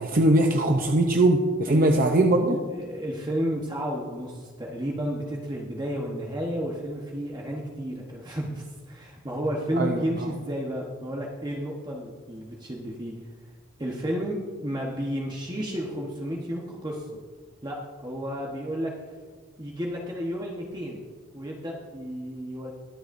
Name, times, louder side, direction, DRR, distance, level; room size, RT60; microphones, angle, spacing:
voice 1, 0.0-2.6 9.7-10.3, right 1 dB, 45° right, 3 dB, 0.7 m, -21 dB
voice 2, 2.5-13.1 13.8-17.2 17.6-18.9 19.6-21.0 21.3-22.7, equal, 20° right, -2 dB, 1.1 m, -32 dB
22.5 x 7.9 x 2.6 m, 1.5 s
head